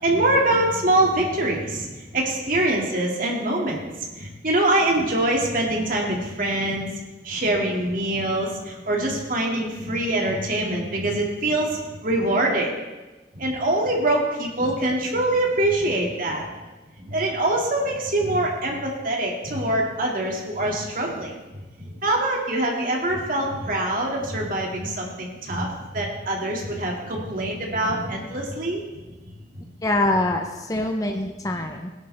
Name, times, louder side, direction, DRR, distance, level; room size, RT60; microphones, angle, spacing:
voice 1, 0.0-6.9 7.2-12.8 13.3-16.5 17.0-21.3 21.8-28.8 29.5-29.7 31.5-31.6, right 1 dB, 50° right, -1 dB, 2.3 m, -24 dB
voice 2, 29.8-31.9, left 1 dB, 20° left, 3 dB, 0.7 m, -24 dB
19.0 x 11.0 x 3.4 m, 1.2 s
head